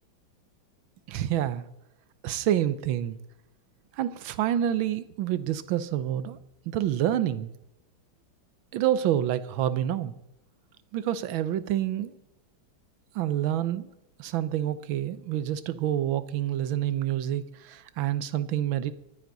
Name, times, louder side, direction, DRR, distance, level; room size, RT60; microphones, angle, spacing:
voice 1, 1.1-1.6 2.2-3.2 3.9-6.4 6.7-7.5 8.7-10.1 10.9-12.1 13.1-13.9 14.2-18.9, right 11 dB, 75° right, 14 dB, 1.4 m, -28 dB
23.0 x 9.5 x 4.0 m, 0.85 s
omnidirectional pair, 2.4 m